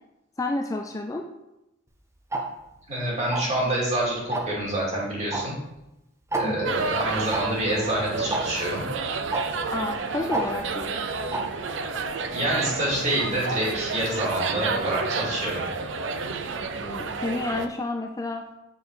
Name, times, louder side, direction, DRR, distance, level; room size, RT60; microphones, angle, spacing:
voice 1, 0.4-1.3 6.4-6.7 9.7-10.9 16.7-18.4, left 2 dB, 15° left, 3 dB, 0.4 m, -30 dB
Tick-tock, 2.3-2.4 3.3-3.6 4.3-4.6 5.3-5.4 5.7-5.8 6.3-6.4 7.3-7.4 8.3-8.4 9.3-9.4 10.3-10.4 11.3-11.4, right 2 dB, 15° right, 0.7 m, -27 dB
voice 2, 2.9-5.5 6.3-8.8 12.3-15.6, right 1 dB, 35° right, -5 dB, 2.6 m, -27 dB
sound 1, 6.6-17.7, right 4 dB, 65° right, 0.5 m, -30 dB
6.9 x 4.5 x 4.8 m, 0.92 s
head